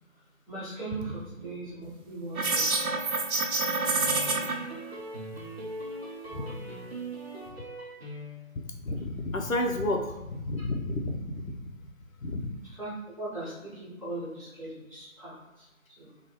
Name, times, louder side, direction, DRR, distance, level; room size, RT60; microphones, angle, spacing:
voice 1, 0.0-3.0 4.3-4.6 6.2-6.8 12.6-16.2, right 2 dB, 25° right, -11 dB, 1.1 m, -40 dB
sound 1, 2.4-4.5, right 3 dB, 90° right, 0.7 m, -27 dB
sound 2, 4.0-8.6, right 1 dB, 50° right, 0.6 m, -40 dB
voice 2, 8.7-11.5 12.2-12.4, left 1 dB, 75° left, 2 dB, 0.6 m, -31 dB
3.0 x 2.3 x 2.9 m, 1.0 s
figure-of-eight pair, 165°, 42 cm